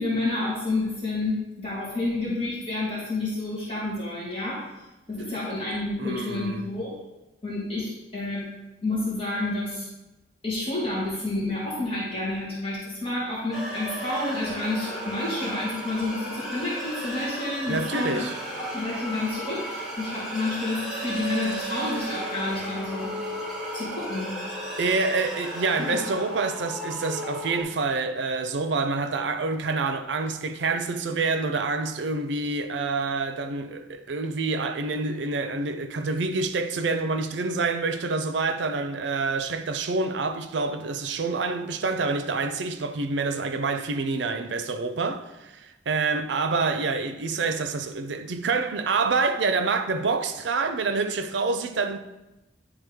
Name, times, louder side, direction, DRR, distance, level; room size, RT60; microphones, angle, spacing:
voice 1, 0.0-4.6 5.1-6.9 7.4-8.5 8.8-9.9 10.4-18.2 18.5-23.2 23.7-24.4 25.8-26.0, left 2 dB, 30° left, 1.9 m, -29 dB
voice 2, 6.0-6.7 17.7-18.3 24.8-52.0, right 3 dB, 85° right, 0.5 m, -27 dB
sound 1, 13.5-27.6, right 1 dB, ahead, 1.6 m, -34 dB
10.0 x 3.5 x 3.5 m
head